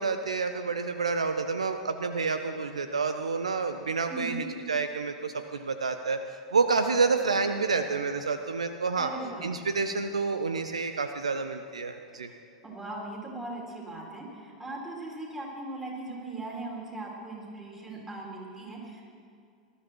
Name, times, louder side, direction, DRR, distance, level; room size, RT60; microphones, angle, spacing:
voice 1, 0.0-6.2 6.5-9.1 9.4-12.3, right 4 dB, 75° right, 8 dB, 0.6 m, -29 dB
voice 2, 4.1-4.4 9.0-9.5 12.6-19.0, right 2 dB, 15° right, -3 dB, 3.8 m, -39 dB
19.5 x 13.0 x 4.6 m, 2.3 s
figure-of-eight pair, 90°, 3 cm